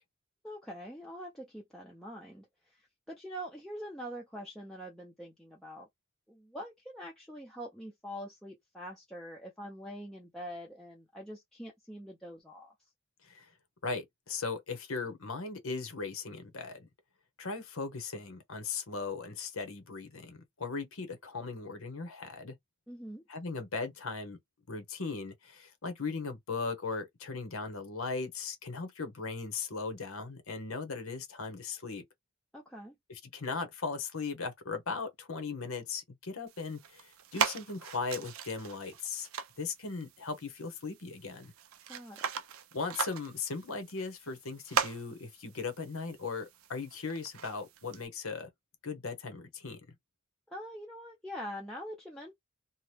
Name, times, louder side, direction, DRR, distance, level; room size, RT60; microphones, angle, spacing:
voice 1, 0.4-5.9 6.3-12.7 22.9-23.2 32.5-32.9 41.9-42.3 50.5-52.3, equal, ahead, 0.5 m, -44 dB
voice 2, 13.8-16.9 17.4-22.6 23.3-24.4 24.7-32.0 33.1-39.3 39.6-41.5 42.7-48.5 48.8-49.8, left 4 dB, 75° left, 0.9 m, -38 dB
sound 1, 36.5-48.1, right 7 dB, 75° right, 0.5 m, -39 dB
2.8 x 2.1 x 3.2 m
head